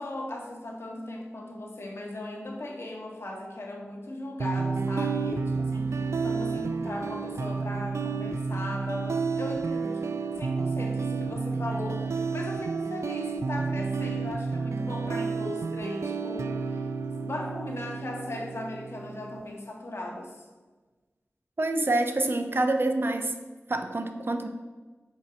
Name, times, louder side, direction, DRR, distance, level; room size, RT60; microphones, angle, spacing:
voice 1, 0.0-10.1 10.4-16.9 17.2-20.4, left 1 dB, 60° left, 0 dB, 1.7 m, -37 dB
sound 1, 4.4-19.4, right 4 dB, 80° right, 0.4 m, -31 dB
voice 2, 21.6-23.3 23.7-24.5, right 2 dB, 50° right, 6 dB, 0.8 m, -26 dB
5.9 x 5.6 x 6.9 m, 1.3 s
wide cardioid pair, 75°, 5 cm